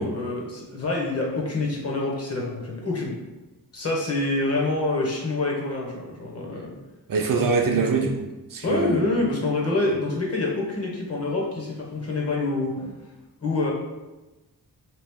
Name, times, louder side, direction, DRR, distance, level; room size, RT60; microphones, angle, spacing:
voice 1, 0.0-3.2 3.7-6.7 8.6-12.8 13.4-13.7, left 2 dB, 40° left, -2 dB, 0.9 m, -26 dB
voice 2, 7.1-9.1, right 4 dB, 55° right, 2 dB, 0.5 m, -24 dB
3.3 x 3.0 x 3.5 m, 1.1 s
wide cardioid pair, 145°, 39 cm